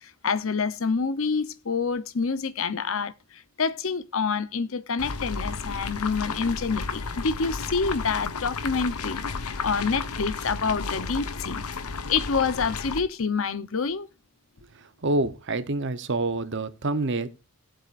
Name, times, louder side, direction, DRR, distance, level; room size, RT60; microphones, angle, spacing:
voice 1, 0.0-9.2 9.6-11.6 12.1-14.1, left 5 dB, 60° left, 0.8 m, -27 dB
sound 1, 5.0-13.0, left 4 dB, 85° left, 1.0 m, -33 dB
voice 2, 15.0-17.3, right 2 dB, 55° right, 0.9 m, -27 dB
18.5 x 7.6 x 2.5 m
head